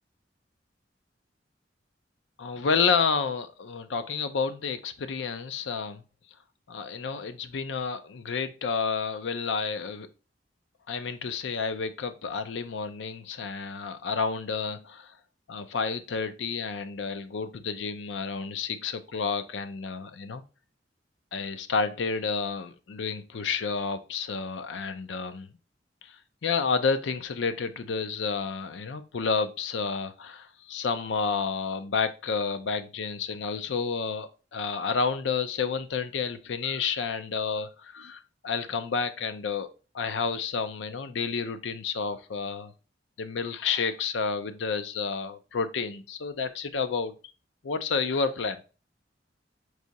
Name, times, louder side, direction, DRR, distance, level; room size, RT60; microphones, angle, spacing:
voice 1, 2.4-6.0 6.7-10.1 10.9-15.1 15.5-20.4 21.3-25.5 26.0-26.1 26.4-39.7 39.9-42.7 43.2-47.1 47.6-48.6, left 5 dB, 80° left, 0.5 m, -30 dB
4.7 x 2.7 x 4.0 m
head